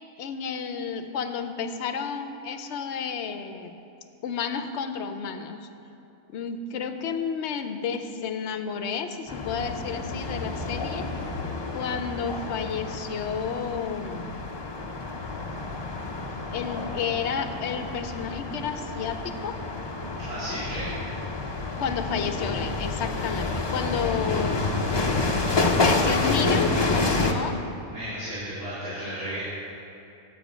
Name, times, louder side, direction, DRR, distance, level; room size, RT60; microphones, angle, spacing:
voice 1, 0.2-3.7 4.2-5.7 6.3-11.1 11.7-14.4 16.5-19.6 21.8-24.7 25.8-27.6, left 6 dB, 60° left, 8 dB, 0.8 m, -31 dB
sound 1, 9.3-27.3, left 3 dB, 40° left, 0.4 m, -29 dB
voice 2, 20.2-21.0 27.9-29.4, equal, 65° right, -13 dB, 3.2 m, -34 dB
10.5 x 8.0 x 5.0 m, 2.8 s
omnidirectional pair, 1.5 m